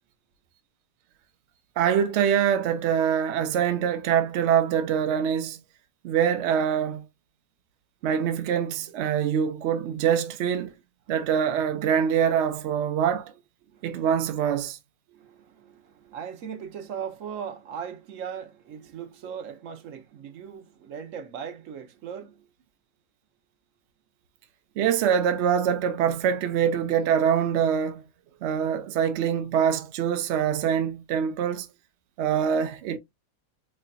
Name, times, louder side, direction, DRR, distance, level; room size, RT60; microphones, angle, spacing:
voice 1, 1.8-5.6 6.0-7.0 8.0-10.7 11.1-13.3 13.8-14.8 24.8-28.0 28.4-31.7 32.2-33.0, right 8 dB, 80° right, 0.6 m, -24 dB
voice 2, 13.6-14.1 15.1-22.5, right 7 dB, 60° right, 0.9 m, -39 dB
3.8 x 3.2 x 2.2 m
omnidirectional pair, 1.7 m